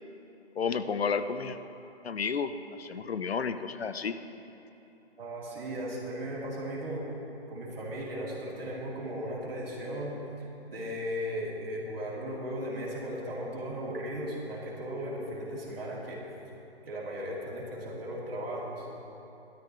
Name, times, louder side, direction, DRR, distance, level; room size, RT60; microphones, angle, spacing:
voice 1, 0.6-1.6 2.0-2.5 2.8-4.2, left 6 dB, 70° left, 10 dB, 0.7 m, -31 dB
voice 2, 5.2-7.1 7.5-10.2 10.7-16.2 16.9-18.9, equal, 60° right, -5 dB, 3.3 m, -36 dB
16.0 x 12.5 x 3.2 m, 3.0 s
hypercardioid pair, 165°, 33 cm